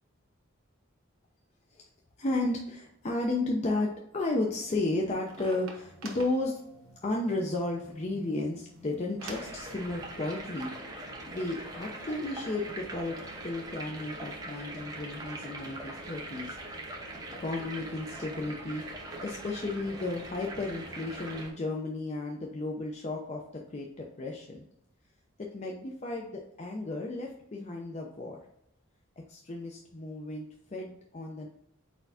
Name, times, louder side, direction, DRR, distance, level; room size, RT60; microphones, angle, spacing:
voice 1, 2.2-10.7 11.3-16.6 17.2-18.8 19.2-24.6 25.4-28.4 29.3-31.5, left 2 dB, 35° left, 0 dB, 0.6 m, -33 dB
sound 1, 4.4-9.6, right 2 dB, 85° right, 1.1 m, -48 dB
sound 2, 9.2-21.5, right 2 dB, 20° right, 0.9 m, -42 dB
4.5 x 4.2 x 2.7 m, 0.77 s
head